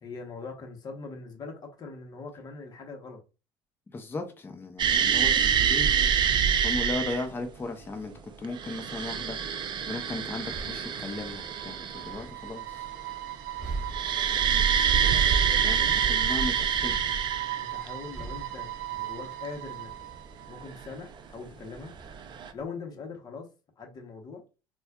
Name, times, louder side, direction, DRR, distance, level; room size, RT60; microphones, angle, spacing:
voice 1, 0.0-3.2 15.0-16.0 17.6-19.9 20.5-21.9 22.5-23.5 23.8-24.4, left 4 dB, 35° left, 1.0 m, -42 dB
voice 2, 3.9-5.9 6.6-9.4 9.9-12.9 15.6-15.8 16.1-17.0, left 2 dB, 20° left, 0.7 m, -36 dB
sound 1, 4.8-7.3 8.4-12.3 13.9-17.9 20.9-21.0 22.1-22.5, right 8 dB, 40° right, 0.5 m, -26 dB
sound 2, 9.6-22.6, right 3 dB, 5° right, 1.1 m, -43 dB
sound 3, 10.9-20.9, right 15 dB, 85° right, 0.6 m, -38 dB
4.1 x 2.3 x 2.4 m
supercardioid pair, 90°, 11 cm